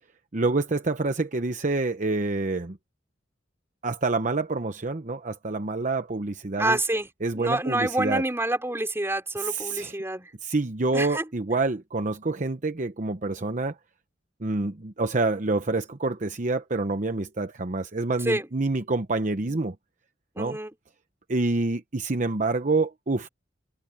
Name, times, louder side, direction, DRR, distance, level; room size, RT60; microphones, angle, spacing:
voice 1, 0.3-2.8 3.8-6.8 7.2-8.2 9.4-10.0 10.4-13.7 14.4-19.7 20.4-20.6 21.3-23.3, right 3 dB, 45° right, 0.9 m, -27 dB
voice 2, 6.6-7.1 7.3-10.3 10.9-11.2 18.2-18.5 20.4-20.7, right 2 dB, 15° right, 4.9 m, -27 dB
head